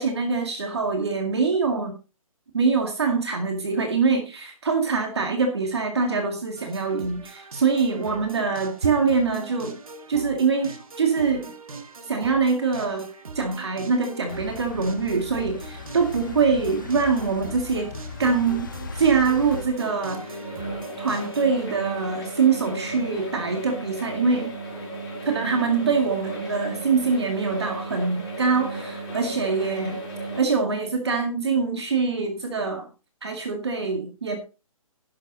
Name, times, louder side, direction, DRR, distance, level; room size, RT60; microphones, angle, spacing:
voice 1, 0.0-1.9 2.5-9.8 10.1-11.5 12.1-13.1 13.3-17.9 18.2-18.7 18.9-20.4 21.0-24.5 25.2-30.0 30.4-32.9 33.2-34.4, right 5 dB, 45° right, 4 dB, 2.1 m, -24 dB
sound 1, 6.6-21.5, right 3 dB, 70° right, 2.2 m, -41 dB
sound 2, 14.3-19.7, left 4 dB, 35° left, 1.2 m, -38 dB
sound 3, 18.2-30.4, right 2 dB, 15° left, 5.4 m, -35 dB
11.0 x 8.1 x 4.0 m, 0.31 s
hypercardioid pair, 180°, 18 cm